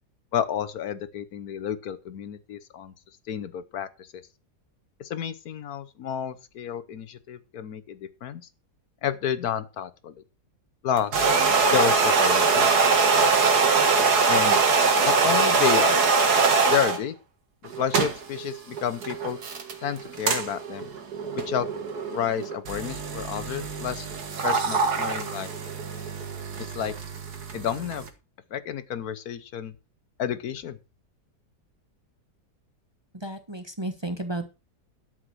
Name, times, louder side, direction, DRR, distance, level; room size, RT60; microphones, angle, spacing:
voice 1, 0.3-2.9 3.3-4.1 5.0-8.4 9.0-10.1 10.8-11.3 11.7-12.7 14.3-14.6 15.0-16.0 16.7-17.1 17.8-19.4 19.8-20.9 21.3-21.7 22.1-24.1 24.4-25.5 26.6-26.9 27.5-28.0 28.5-29.7 30.2-30.8, left 9 dB, 70° left, 14 dB, 1.3 m, -30 dB
sound 1, 11.0-17.0 17.7-28.1, right 4 dB, 75° right, 2.2 m, -23 dB
voice 2, 33.1-34.5, right 1 dB, 20° right, 8 dB, 1.2 m, -33 dB
12.5 x 6.1 x 6.2 m, 0.30 s
omnidirectional pair, 1.7 m